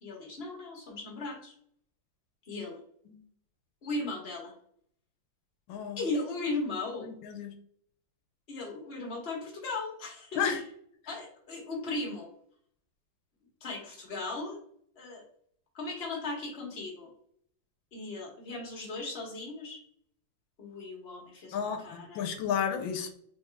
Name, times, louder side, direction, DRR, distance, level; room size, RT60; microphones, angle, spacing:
voice 1, 0.0-1.5 2.4-2.8 3.8-4.5 6.0-7.1 8.5-10.6 11.1-12.3 13.6-14.6 15.0-15.2 15.7-17.1 17.9-19.8 20.6-22.3, left 2 dB, 35° left, -2 dB, 1.6 m, -37 dB
voice 2, 5.7-6.0 7.0-7.5 10.4-10.6 21.5-23.1, left 7 dB, 90° left, 5 dB, 1.4 m, -32 dB
4.3 x 3.5 x 3.4 m, 0.63 s
omnidirectional pair, 2.0 m